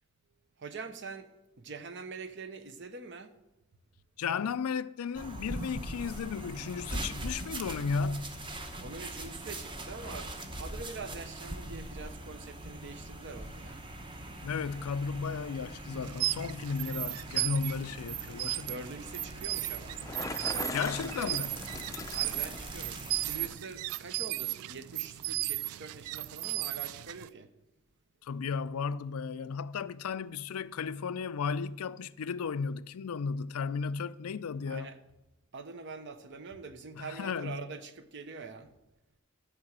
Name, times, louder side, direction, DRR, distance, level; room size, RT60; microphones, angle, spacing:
voice 1, 0.6-1.3 1.6-3.3 8.8-13.8 18.5-20.0 20.5-21.3 22.1-27.5 34.7-35.0 35.5-38.7, right 4 dB, 55° right, 0.8 m, -44 dB
voice 2, 4.2-8.4 14.4-18.7 20.7-21.5 28.2-34.9 37.0-37.7, left 5 dB, 85° left, 0.4 m, -34 dB
sound 1, 5.1-23.5, right 1 dB, 20° right, 0.9 m, -42 dB
sound 2, 16.0-27.3, right 16 dB, 75° right, 0.3 m, -36 dB
Bicycle, 19.8-22.7, left 3 dB, 15° left, 0.5 m, -40 dB
12.5 x 4.9 x 7.4 m
head